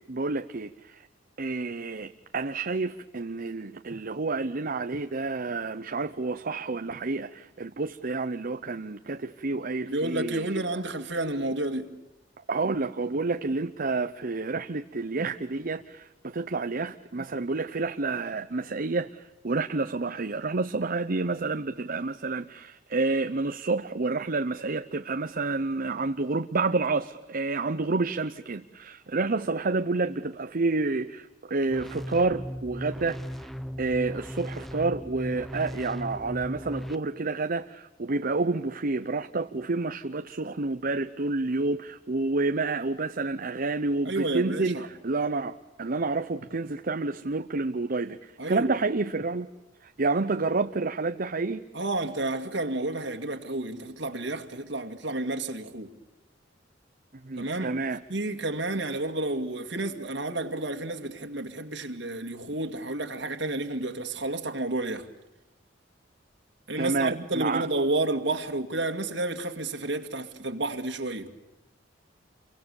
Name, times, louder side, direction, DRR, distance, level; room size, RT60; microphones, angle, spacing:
voice 1, 0.1-1.1 1.4-10.8 12.5-33.5 33.8-49.5 49.8-51.6 57.2-58.0 66.8-67.7, right 3 dB, 50° right, 0.8 m, -29 dB
voice 2, 9.8-11.9 44.1-44.9 48.4-48.7 51.7-55.9 57.4-57.8 58.1-65.1 66.7-71.3, right 2 dB, 70° right, 2.3 m, -31 dB
sound 1, 31.7-36.9, equal, ahead, 0.8 m, -37 dB
29.5 x 24.0 x 7.2 m
head